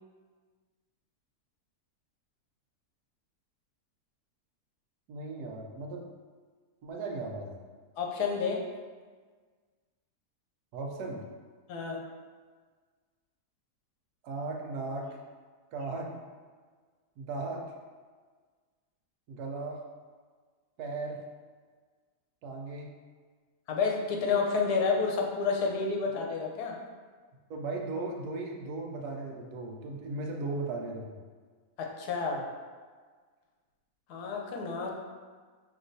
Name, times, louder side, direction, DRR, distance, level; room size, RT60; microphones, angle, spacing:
voice 1, 5.1-6.0 6.8-7.6 10.7-11.2 14.2-15.1 15.7-16.2 17.2-17.7 19.3-19.8 20.8-21.2 22.4-22.9 27.5-31.2, right 3 dB, 80° right, 1 dB, 1.1 m, -36 dB
voice 2, 8.0-8.6 11.7-12.0 23.7-26.8 31.8-32.5 34.1-35.0, left 5 dB, 85° left, 0 dB, 1.2 m, -30 dB
5.6 x 2.9 x 2.6 m, 1.5 s
omnidirectional pair, 1.7 m